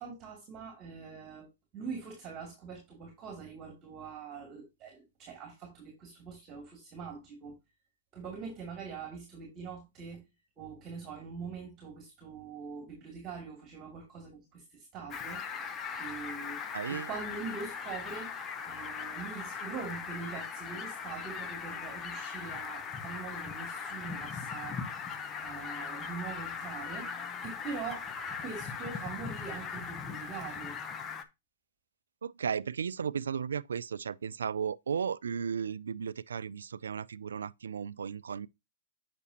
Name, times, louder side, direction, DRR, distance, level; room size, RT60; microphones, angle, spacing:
voice 1, 0.0-1.5 1.7-7.6 8.1-10.2 10.6-15.4 16.0-16.6 16.9-18.3 18.6-24.9 25.4-27.1 27.4-28.1 28.4-30.8, right 5 dB, 30° right, 2.6 m, -43 dB
Fowl, 15.1-31.2, left 6 dB, 25° left, 0.8 m, -39 dB
voice 2, 16.7-17.1 32.2-38.5, right 7 dB, 85° right, 0.3 m, -35 dB
8.2 x 6.0 x 2.8 m
hypercardioid pair, 120°, 0 cm